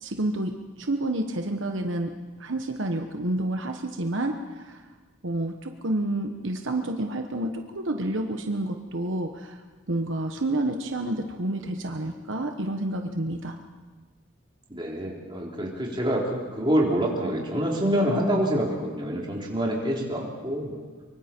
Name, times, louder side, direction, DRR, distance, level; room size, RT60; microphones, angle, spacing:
voice 1, 0.0-2.1 2.4-4.8 5.2-9.6 9.9-13.6, right 1 dB, 70° right, 4 dB, 1.2 m, -29 dB
voice 2, 14.7-20.9, equal, 25° right, -3 dB, 3.6 m, -26 dB
24.0 x 24.0 x 4.5 m, 1.3 s
head